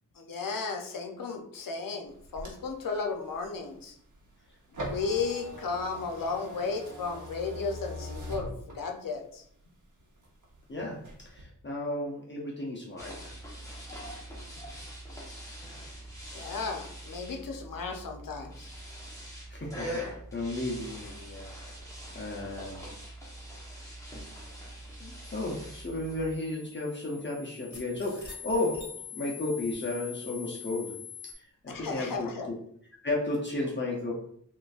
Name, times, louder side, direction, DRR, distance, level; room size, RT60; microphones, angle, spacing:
voice 1, 0.2-3.9 4.7-9.4 16.3-18.7 31.7-32.5, left 4 dB, 85° left, 3 dB, 0.6 m, -34 dB
sound 1, 2.1-9.1 9.6-10.6 10.9-11.4, equal, 65° right, 0.9 m, -42 dB
voice 2, 10.7-13.4 19.5-20.0 20.3-21.5 22.1-22.8 25.0-32.6 33.0-34.1, left 2 dB, 35° left, -3 dB, 0.6 m, -34 dB
sound 2, 13.0-26.3, equal, 10° left, 0.9 m, -43 dB
sound 3, 25.2-31.3, left 7 dB, 60° left, 1.0 m, -45 dB
3.7 x 2.6 x 2.4 m, 0.64 s
wide cardioid pair, 90°, 33 cm